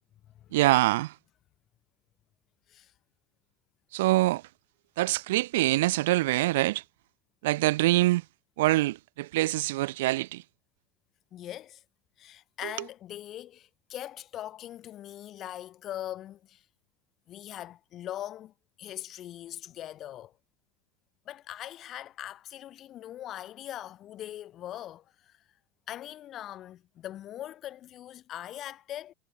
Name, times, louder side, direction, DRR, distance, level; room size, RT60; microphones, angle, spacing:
voice 1, 0.5-1.1 3.9-4.4 5.0-6.8 7.4-8.2 8.6-10.4, right 18 dB, 85° right, 0.3 m, -24 dB
voice 2, 11.3-11.8 12.2-16.6 17.3-20.3 21.3-25.4 25.9-29.1, left 12 dB, 30° left, 2.4 m, -41 dB
supercardioid pair, 165°, 0 cm